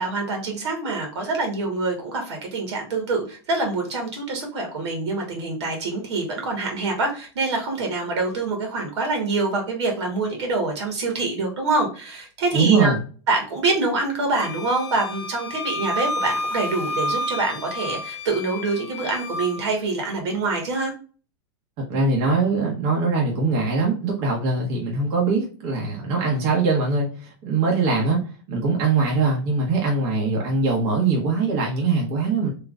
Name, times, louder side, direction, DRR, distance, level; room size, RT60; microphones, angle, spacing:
voice 1, 0.0-13.0 13.3-20.9, right 3 dB, 80° right, 2 dB, 1.8 m, -25 dB
voice 2, 12.5-13.0 21.9-28.2 28.5-32.5, right 4 dB, 40° right, -2 dB, 1.2 m, -22 dB
Wind instrument woodwind instrument, 14.4-19.6, left 1 dB, 80° left, 1.1 m, -30 dB
3.5 x 3.0 x 2.4 m, 0.38 s
supercardioid pair, 160°, 14 cm